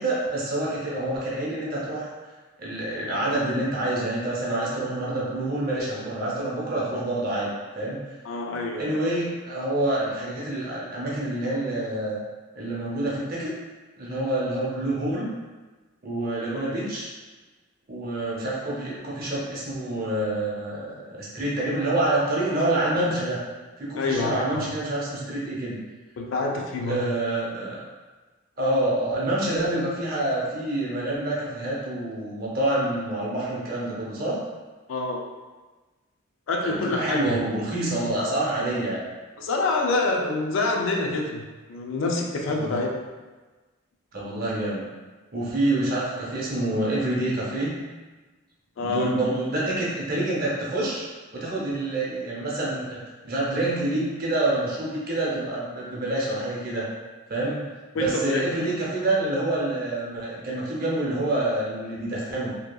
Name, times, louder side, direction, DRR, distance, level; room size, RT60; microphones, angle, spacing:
voice 1, 0.0-2.1 2.6-8.0 8.8-12.2 12.5-13.5 14.0-15.3 16.0-17.1 17.9-23.4 23.8-25.8 26.9-27.8 28.6-34.4 36.6-39.0 42.5-42.8 44.1-44.9 45.3-47.7 48.8-51.0 51.3-53.0 53.2-56.8 57.3-57.6 57.9-62.5, right 1 dB, 45° right, -5 dB, 0.6 m, -27 dB
voice 2, 8.2-8.9 16.5-16.6 24.0-24.6 26.2-27.0 34.9-35.2 36.5-37.4 38.0-38.1 39.4-41.4 41.7-43.0 48.8-49.1 57.9-58.4, left 3 dB, 65° left, 1 dB, 0.4 m, -26 dB
2.8 x 2.3 x 2.2 m, 1.3 s
head